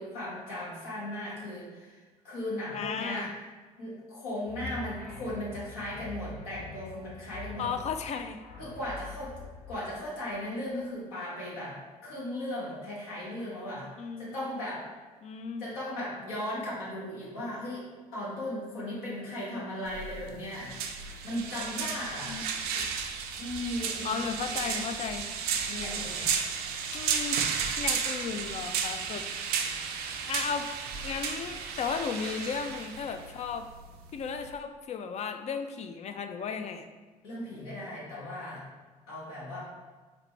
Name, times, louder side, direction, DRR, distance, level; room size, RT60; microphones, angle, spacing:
voice 1, 0.0-3.3 3.8-7.7 8.6-9.3 9.7-13.9 14.2-14.8 15.6-17.8 18.1-20.7 21.2-22.4 23.4-24.2 24.4-24.8 25.7-26.4 37.2-38.7 39.1-39.6, left 1 dB, 80° left, -7 dB, 1.3 m, -37 dB
voice 2, 2.7-3.3 7.6-8.4 14.0-14.6 15.2-15.7 22.3-22.4 22.8-22.9 24.0-25.3 26.9-27.4 27.8-29.2 30.3-30.7 31.0-33.7 34.1-36.9, left 6 dB, 35° left, 8 dB, 0.4 m, -35 dB
sound 1, 4.5-10.7, left 2 dB, 60° left, 0.8 m, -45 dB
sound 2, 19.9-34.5, right 6 dB, 60° right, 0.4 m, -33 dB
4.1 x 2.1 x 3.1 m, 1.3 s
hypercardioid pair, 55°, 18 cm